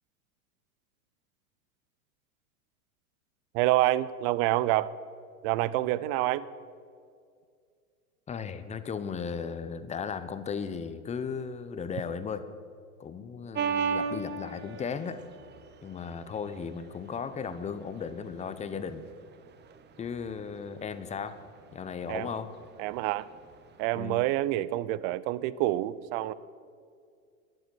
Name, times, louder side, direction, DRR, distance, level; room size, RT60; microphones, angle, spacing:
voice 1, 3.5-4.9 5.4-6.5 22.1-22.3 22.8-23.3 23.8-26.3, right 16 dB, 45° right, 18 dB, 0.6 m, -27 dB
voice 2, 8.3-12.5 13.0-15.2 15.8-19.0 20.0-21.4 21.7-22.5 23.9-24.3, left 6 dB, 15° left, 12 dB, 0.8 m, -36 dB
sound 1, 13.5-23.9, right 6 dB, 25° right, 0.9 m, -37 dB
12.0 x 9.9 x 7.8 m, 2.2 s
hypercardioid pair, 110°, 42 cm